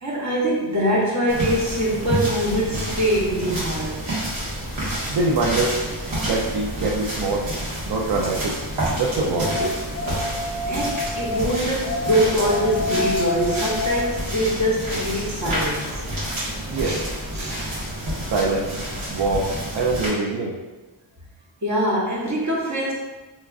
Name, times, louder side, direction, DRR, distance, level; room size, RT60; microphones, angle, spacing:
voice 1, 0.0-4.0 10.7-16.0 16.8-17.0 17.3-17.5 21.6-22.9, equal, 40° right, -4 dB, 0.9 m, -23 dB
sound 1, 1.3-20.1, right 1 dB, 85° right, 1.5 m, -29 dB
voice 2, 5.1-5.7 6.2-7.5 7.9-8.6 9.0-9.7 16.7-17.0 18.3-18.8 19.1-20.6, right 3 dB, 60° right, -2 dB, 0.5 m, -24 dB
sound 2, 9.3-11.5 11.8-14.1, left 3 dB, 30° left, 0.4 m, -28 dB
3.5 x 3.0 x 2.3 m, 1.2 s
wide cardioid pair, 115°, 46 cm